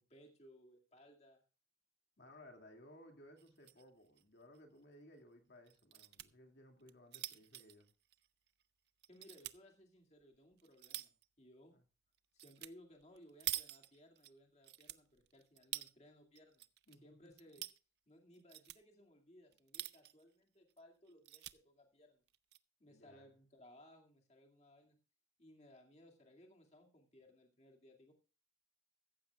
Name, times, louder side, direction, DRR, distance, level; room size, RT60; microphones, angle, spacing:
voice 1, 0.0-1.4 9.1-11.8 12.3-16.6 17.0-17.6 18.1-22.2 22.8-25.0 25.4-28.1, left 1 dB, 35° left, 1 dB, 2.2 m, -62 dB
voice 2, 2.2-7.9 11.7-11.8 16.9-17.6 22.9-23.3, left 1 dB, 75° left, 3 dB, 2.3 m, -60 dB
sound 1, 3.4-3.8 4.2-4.3 4.5-4.6 5.7-6.3 6.8-8.6 9.0-9.6 10.2-11.2 12.4-12.7 13.0-14.3 14.6-15.9 16.4-17.0 17.3-17.8 18.3-18.8 19.5-20.2 20.7-20.8 21.1-21.6 22.3-22.6, right 15 dB, 65° right, 0.5 m, -46 dB
15.0 x 14.5 x 2.4 m, 0.33 s
head